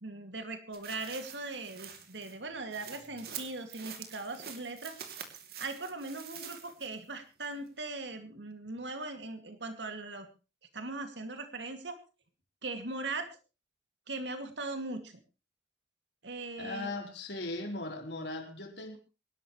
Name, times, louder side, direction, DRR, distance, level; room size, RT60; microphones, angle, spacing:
voice 1, 0.0-5.0 5.6-10.3 10.7-12.0 12.6-13.3 14.1-15.2 16.2-16.9, right 3 dB, 90° right, 2.5 m, -39 dB
sound 1, 0.7-7.1 7.4-7.5, right 8 dB, 60° right, 2.8 m, -47 dB
voice 2, 16.6-19.0, left 2 dB, 80° left, 4.0 m, -38 dB
25.0 x 12.0 x 3.2 m
head